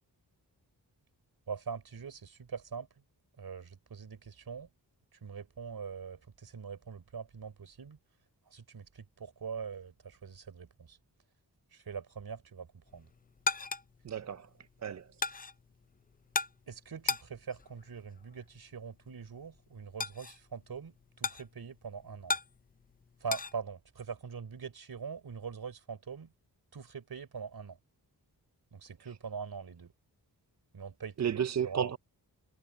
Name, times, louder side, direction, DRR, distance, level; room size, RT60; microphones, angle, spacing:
voice 1, 1.5-2.9 3.4-4.7 5.2-8.0 8.5-8.9 9.2-11.0 11.9-12.7 12.9-13.1 16.7-20.9 21.2-22.4 23.2-26.3 26.7-27.8 28.7-29.9 30.7-31.2 31.6-31.9, right 6 dB, 60° right, 4.3 m, -43 dB
sound 1, 12.9-23.5, left 4 dB, 25° left, 0.4 m, -39 dB
voice 2, 14.0-14.5 14.8-15.1 29.0-29.2 31.2-32.0, right 8 dB, 40° right, 0.5 m, -32 dB
wide cardioid pair, 155°, 41 cm